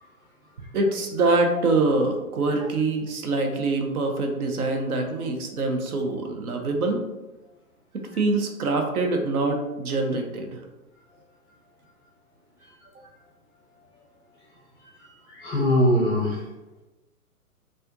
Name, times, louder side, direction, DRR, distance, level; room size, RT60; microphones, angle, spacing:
voice 1, 0.7-7.0 8.2-10.6, right 2 dB, 75° right, 3 dB, 0.8 m, -24 dB
voice 2, 14.8-16.4, left 1 dB, 10° left, -6 dB, 0.5 m, -24 dB
4.3 x 2.4 x 2.5 m, 1.0 s
hypercardioid pair, 135°, 43 cm